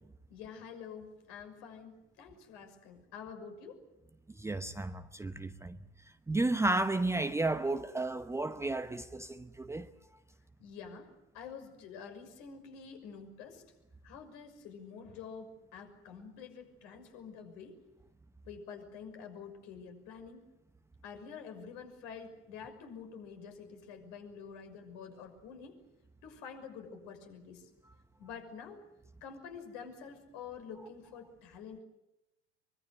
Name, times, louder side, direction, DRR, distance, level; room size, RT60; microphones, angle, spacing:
voice 1, 0.3-3.8 10.6-11.1 11.3-13.7 14.0-17.8 18.5-20.5 21.0-25.8 26.2-27.7 28.2-28.8 29.2-31.8, left 6 dB, 60° left, 6.2 m, -48 dB
voice 2, 4.4-5.8 6.3-9.9, right 2 dB, 10° right, 0.9 m, -32 dB
24.0 x 23.5 x 8.3 m
hypercardioid pair, 90°, 33 cm